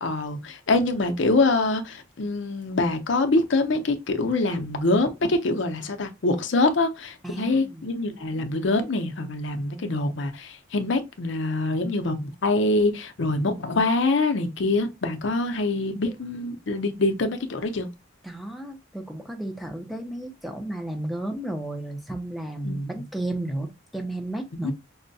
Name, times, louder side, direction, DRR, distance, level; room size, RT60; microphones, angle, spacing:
voice 1, 0.0-17.9 22.6-22.8 24.5-24.7, left 2 dB, 65° left, 0.6 m, -25 dB
voice 2, 7.2-7.9 18.2-24.7, right 1 dB, ahead, 0.5 m, -33 dB
5.3 x 2.1 x 2.6 m
head